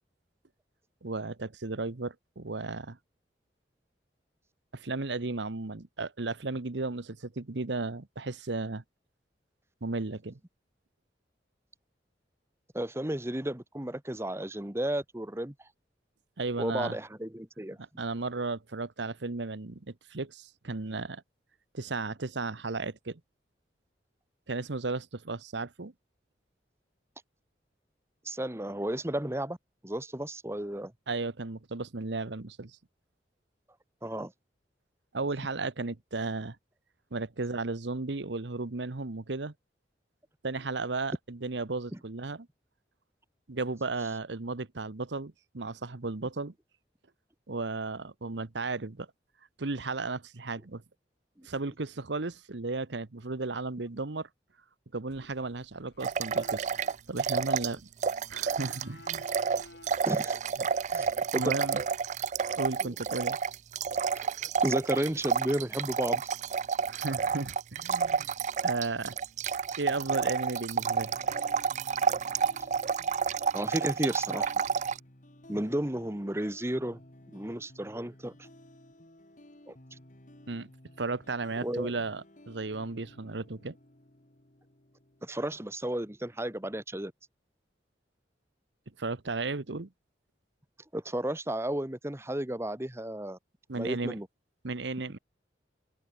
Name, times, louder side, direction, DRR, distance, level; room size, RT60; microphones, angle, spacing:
voice 1, 1.0-3.0 4.7-8.8 9.8-10.4 16.4-17.0 17.8-21.2 21.7-23.2 24.5-25.9 31.1-32.8 35.1-36.6 37.1-39.5 40.4-42.5 43.5-46.5 47.5-49.1 49.6-50.8 51.4-54.3 54.9-56.7 57.1-57.8 58.3-59.2 60.6-61.8 62.6-63.4 66.9-68.3 68.6-69.1 69.8-71.1 80.5-80.7 81.0-83.8 89.0-89.9 93.7-94.1 94.6-95.2, right 3 dB, 75° right, 1.1 m, -34 dB
voice 2, 12.7-15.5 16.6-17.8 28.2-29.6 29.8-30.9 34.0-34.3 51.4-51.5 59.4-59.5 60.0-60.4 60.9-61.5 62.8-62.9 64.1-66.2 73.5-74.5 75.5-77.0 77.3-78.3 79.7-79.8 81.6-81.9 85.2-87.1 90.9-93.4 93.8-94.3, right 1 dB, 15° right, 1.2 m, -33 dB
sound 1, 55.1-61.1, left 2 dB, 65° left, 6.5 m, -55 dB
sound 2, 56.0-57.7 58.0-75.0, right 6 dB, 40° right, 0.3 m, -30 dB
sound 3, 70.7-85.8, left 1 dB, 45° left, 2.6 m, -55 dB
open air
head